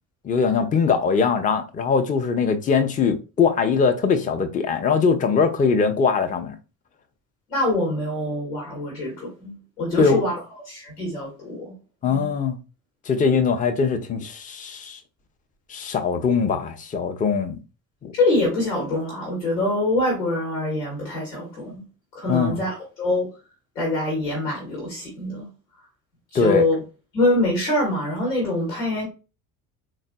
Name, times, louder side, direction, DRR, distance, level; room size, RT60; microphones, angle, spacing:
voice 1, 0.2-6.6 10.0-10.2 12.0-12.6 13.1-15.0 15.7-17.6 18.0-18.1 22.3-22.6 26.3-26.6, left 5 dB, 15° left, 0.5 m, -21 dB
voice 2, 7.5-10.4 10.6-11.7 12.0-12.3 18.1-21.8 22.1-22.7 23.0-23.3 23.7-25.5 26.3-26.7 27.1-29.0, left 2 dB, 85° left, 1.2 m, -24 dB
3.8 x 2.0 x 2.6 m
figure-of-eight pair, 55°, 49 cm